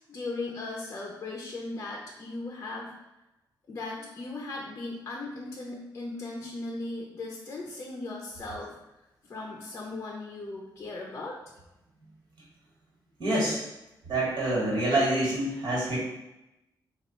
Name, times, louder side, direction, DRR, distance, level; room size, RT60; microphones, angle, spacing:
voice 1, 0.1-2.9 3.7-8.8 9.2-11.4, left 2 dB, 35° left, -2 dB, 0.5 m, -37 dB
voice 2, 13.2-13.6 14.0-16.0, right 1 dB, 65° right, -5 dB, 1.4 m, -26 dB
3.1 x 2.3 x 4.3 m, 0.94 s
wide cardioid pair, 155°, 8 cm